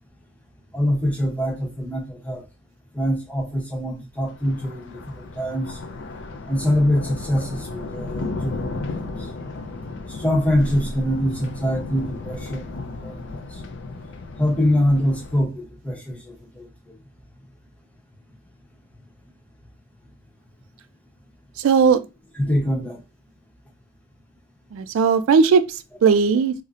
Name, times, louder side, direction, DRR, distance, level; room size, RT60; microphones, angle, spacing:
voice 1, 0.7-2.4 2.9-5.8 6.5-9.0 10.1-13.2 14.4-16.7 22.4-23.0, equal, 5° left, 0.7 m, -24 dB
Thunder, 4.2-15.4, left 2 dB, 60° left, 0.4 m, -34 dB
voice 2, 21.6-22.0 24.7-26.5, right 5 dB, 80° right, 0.3 m, -17 dB
4.0 x 2.0 x 2.4 m
head